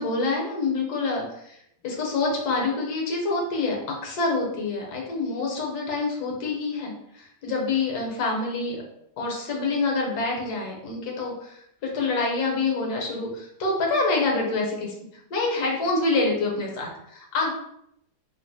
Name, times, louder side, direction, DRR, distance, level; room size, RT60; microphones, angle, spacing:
voice 1, 0.0-1.6 1.8-3.8 4.0-8.8 9.2-14.9 15.3-17.5, left 3 dB, 70° left, -1 dB, 1.3 m, -26 dB
3.0 x 2.5 x 2.6 m, 0.76 s
omnidirectional pair, 1.8 m